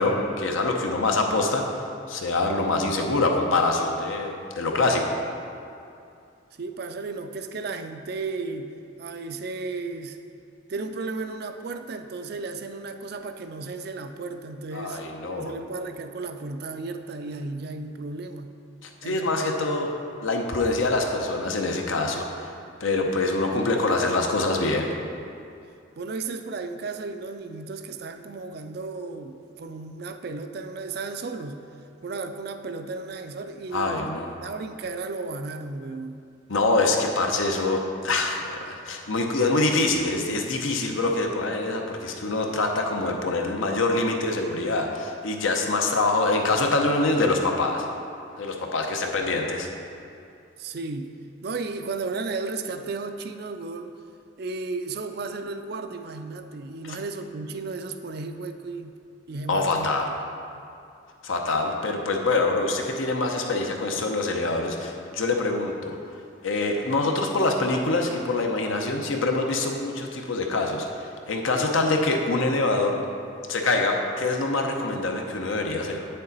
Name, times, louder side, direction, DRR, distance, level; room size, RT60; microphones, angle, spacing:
voice 1, 0.0-5.2 14.7-15.5 18.8-19.9 20.2-24.9 33.7-34.3 36.5-47.8 48.4-49.7 56.9-57.0 59.5-60.1 61.2-66.0 66.4-73.0 73.5-76.1, left 2 dB, 75° left, 2 dB, 0.8 m, -25 dB
voice 2, 6.6-8.7 9.0-10.2 10.7-15.0 15.3-18.5 19.0-19.9 26.0-31.6 32.0-34.0 34.4-36.2 50.6-51.1 51.4-53.9 54.4-59.0 59.3-59.9, right 3 dB, 50° right, 7 dB, 0.4 m, -34 dB
8.5 x 6.7 x 4.0 m, 2.5 s
head